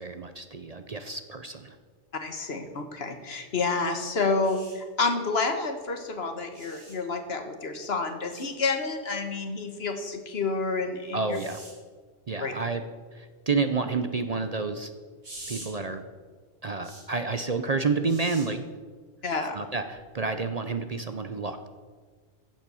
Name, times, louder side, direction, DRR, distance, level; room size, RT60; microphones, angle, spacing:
voice 1, 0.0-1.8 11.1-11.6 12.3-12.8 13.1-14.9 15.5-16.0 16.6-18.6 19.5-21.7, right 4 dB, 40° right, 9 dB, 0.7 m, -29 dB
voice 2, 2.2-11.4 12.4-12.5 19.2-19.6, left 4 dB, 65° left, 6 dB, 1.6 m, -29 dB
sound 1, 4.4-4.7 6.5-7.0 8.3-8.5 11.3-11.7 15.2-15.7 16.8-17.0 18.0-18.5 19.9-20.1, right 1 dB, 75° right, 4.2 m, -44 dB
14.5 x 7.7 x 6.9 m, 1.5 s
omnidirectional pair, 1.2 m